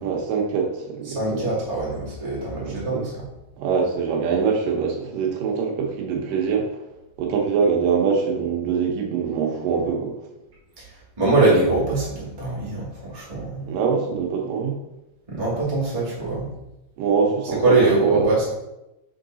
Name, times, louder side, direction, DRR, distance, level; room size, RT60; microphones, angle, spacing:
voice 1, 0.0-1.5 2.6-3.1 3.6-6.8 7.2-10.2 13.7-14.8 17.0-18.4, right 5 dB, 85° right, 1 dB, 2.6 m, -24 dB
voice 2, 1.1-3.3 10.8-10.9 11.2-13.7 15.3-16.5 17.6-18.4, right 2 dB, 10° right, -8 dB, 1.7 m, -22 dB
5.8 x 4.7 x 3.9 m, 0.94 s
omnidirectional pair, 3.8 m